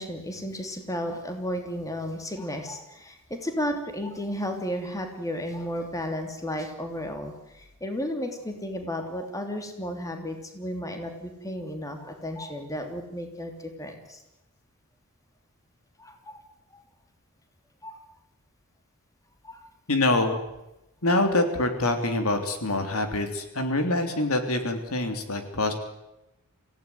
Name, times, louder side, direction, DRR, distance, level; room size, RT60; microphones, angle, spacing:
voice 1, 0.0-14.2 16.0-16.4 16.7-16.8 17.8-18.0 19.4-19.6, equal, 15° left, 5 dB, 3.1 m, -33 dB
voice 2, 19.9-20.4 21.0-25.7, left 2 dB, 70° left, 6 dB, 3.3 m, -25 dB
26.5 x 16.5 x 9.7 m, 0.94 s
head